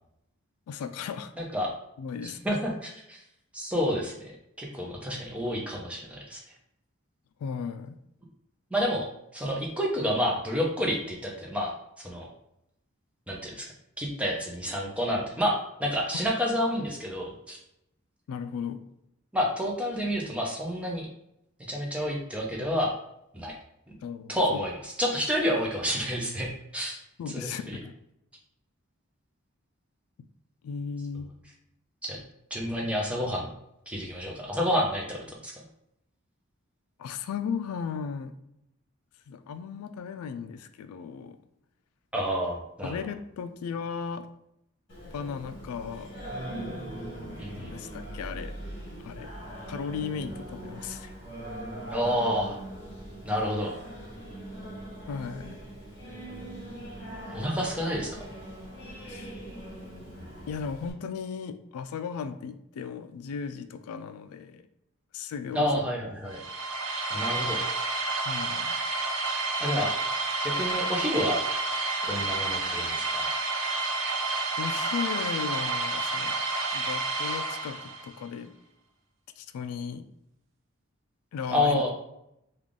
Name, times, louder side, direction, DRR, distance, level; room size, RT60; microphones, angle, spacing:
voice 1, 0.7-1.3 2.0-2.5 7.4-8.0 18.3-18.8 24.0-24.4 27.2-27.9 30.6-31.3 37.0-38.3 39.3-41.4 42.8-44.3 45.1-46.1 47.5-48.5 49.0-49.3 49.7-51.1 55.1-55.6 59.0-59.4 60.5-64.6 65.1-65.8 68.3-68.7 73.6-74.1 74.6-76.4 76.7-78.5 79.4-80.1 81.3-81.9, left 6 dB, 90° left, 11 dB, 0.3 m, -36 dB
voice 2, 1.4-1.7 2.2-3.2 3.5-4.3 4.6-6.4 8.7-9.1 9.3-11.7 12.0-12.3 13.3-13.7 14.0-17.6 19.3-21.1 21.7-22.9 23.3-23.5 23.9-24.0 24.3-27.0 27.3-27.8 32.0-32.2 32.5-33.5 33.9-35.6 42.1-43.0 47.4-47.7 51.9-52.6 53.2-53.8 57.3-58.3 65.5-66.4 67.1-67.6 69.6-69.9 70.4-71.4 72.0-73.2 81.5-81.9, equal, 5° right, -2 dB, 0.5 m, -29 dB
Singing, 44.9-60.9, right 1 dB, 55° left, 1.4 m, -41 dB
sound 1, 66.3-78.1, right 3 dB, 60° right, 0.6 m, -30 dB
3.4 x 2.4 x 3.6 m, 0.79 s
head